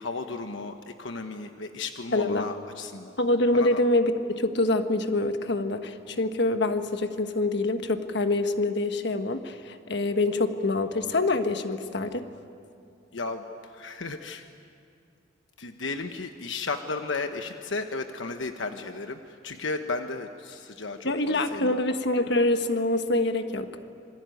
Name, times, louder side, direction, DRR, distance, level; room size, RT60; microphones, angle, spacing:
voice 1, 0.0-3.2 3.5-3.8 13.1-14.4 15.6-21.8, left 3 dB, 80° left, 6 dB, 1.1 m, -34 dB
voice 2, 2.1-2.5 3.2-12.3 21.0-23.7, left 2 dB, 65° left, 7 dB, 1.4 m, -25 dB
26.5 x 23.5 x 9.3 m, 2.5 s
head